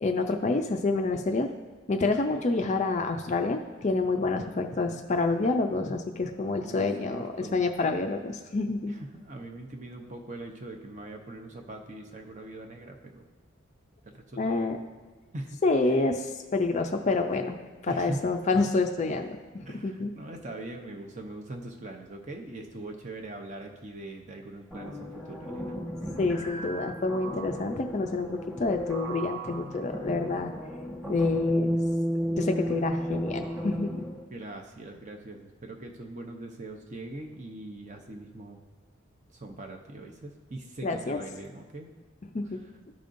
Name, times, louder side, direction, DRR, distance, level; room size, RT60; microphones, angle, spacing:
voice 1, 0.0-1.5 1.9-7.3 7.5-8.9 14.4-14.8 15.6-17.6 17.8-20.1 26.2-30.5 31.1-31.8 32.3-34.1 40.8-41.2 42.3-42.6, left 3 dB, 35° left, 5 dB, 0.4 m, -28 dB
voice 2, 6.6-7.6 8.9-13.3 14.0-14.8 15.3-16.0 17.9-18.2 19.7-25.8 34.3-38.6 39.3-41.9 42.4-42.7, right 2 dB, 35° right, 3 dB, 0.7 m, -42 dB
sound 1, 24.7-34.2, equal, 5° right, 1.2 m, -33 dB
13.5 x 5.1 x 2.6 m, 1.4 s
head